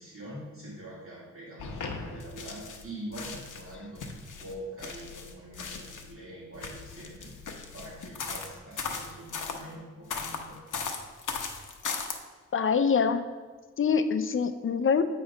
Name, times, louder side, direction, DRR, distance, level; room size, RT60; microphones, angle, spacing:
voice 1, 0.0-4.0 4.4-7.3 7.7-10.6, right 1 dB, 45° right, -7 dB, 2.1 m, -44 dB
sound 1, 1.6-2.8 3.1-6.1 6.5-9.6 10.1-12.2, left 5 dB, 80° left, 0.8 m, -37 dB
voice 2, 12.5-13.2 13.8-15.0, left 6 dB, 45° left, 10 dB, 0.5 m, -24 dB
8.3 x 3.1 x 5.0 m, 1.4 s
cardioid pair, 80°, 31 cm